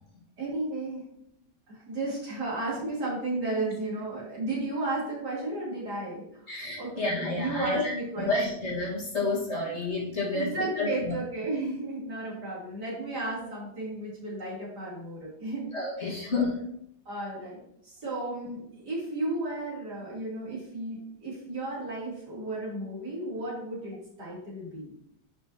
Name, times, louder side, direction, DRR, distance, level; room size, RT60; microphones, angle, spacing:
voice 1, 0.4-1.0 1.7-6.5 6.8-8.3 9.2-9.8 10.3-15.6 16.0-16.2 17.1-17.6 17.8-24.9, right 2 dB, 65° right, -6 dB, 3.6 m, -34 dB
voice 2, 6.5-11.1 15.7-16.7, left 3 dB, 40° left, -4 dB, 2.0 m, -30 dB
11.0 x 5.6 x 2.9 m, 0.75 s
omnidirectional pair, 1.9 m